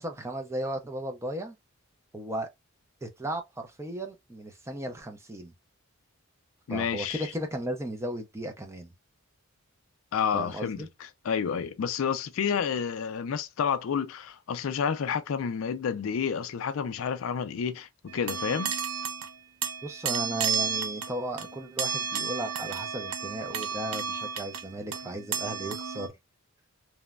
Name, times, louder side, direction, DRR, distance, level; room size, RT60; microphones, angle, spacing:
voice 1, 0.0-1.6 2.1-2.5 3.0-5.5 6.7-8.9 10.3-10.9 19.8-26.1, right 1 dB, 15° right, 0.4 m, -35 dB
voice 2, 6.7-7.2 10.1-10.8 11.2-18.7, left 7 dB, 65° left, 0.3 m, -30 dB
sound 1, 18.1-19.3 19.6-26.1, right 7 dB, 75° right, 0.4 m, -32 dB
3.0 x 2.1 x 2.3 m
head